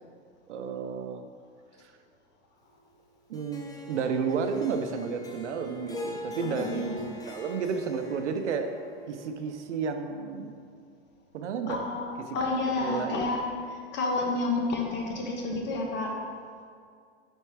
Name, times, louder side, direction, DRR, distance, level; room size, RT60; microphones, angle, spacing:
voice 1, 0.5-1.3 1.8-1.9 3.3-8.7 9.1-10.5 11.3-11.8 12.3-12.4 12.8-13.2, right 5 dB, 90° right, 7 dB, 0.7 m, -32 dB
Harp, 3.3-9.7, equal, 10° left, 0.6 m, -43 dB
voice 2, 6.4-7.1 11.7-13.4 13.7-16.1, left 2 dB, 30° left, 0 dB, 1.2 m, -30 dB
5.4 x 4.5 x 4.7 m, 2.2 s
hypercardioid pair, 120°, 34 cm